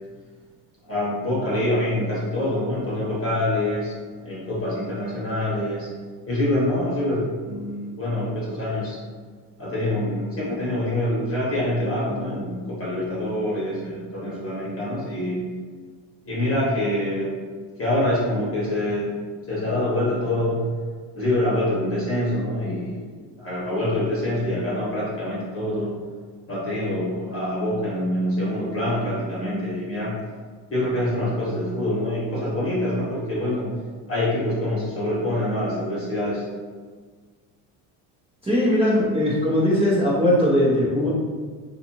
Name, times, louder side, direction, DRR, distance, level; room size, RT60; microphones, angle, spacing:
voice 1, 0.8-3.9 4.2-5.9 6.3-9.0 9.6-15.5 16.2-17.4 17.8-19.1 19.5-20.6 21.1-23.1 23.4-25.9 26.5-30.1 30.7-33.7 34.1-36.4, left 1 dB, 30° left, -7 dB, 1.2 m, -25 dB
voice 2, 38.4-41.1, left 1 dB, 10° right, -10 dB, 0.8 m, -20 dB
2.5 x 2.4 x 2.9 m, 1.5 s
supercardioid pair, 75°, 47 cm